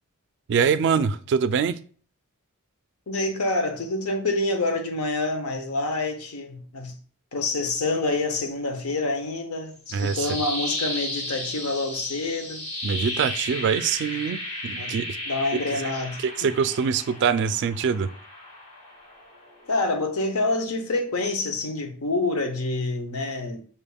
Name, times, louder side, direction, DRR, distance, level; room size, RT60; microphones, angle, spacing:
voice 1, 0.5-1.8 9.9-10.4 12.8-15.2 15.5-15.9 16.2-18.1, right 6 dB, 55° right, 0.3 m, -24 dB
voice 2, 3.1-7.0 7.3-12.7 14.8-15.0 15.3-16.5 19.7-23.6, left 2 dB, 80° left, 0.8 m, -27 dB
sound 1, 9.7-19.8, left 1 dB, 30° left, 1.1 m, -34 dB
5.4 x 3.4 x 2.3 m
head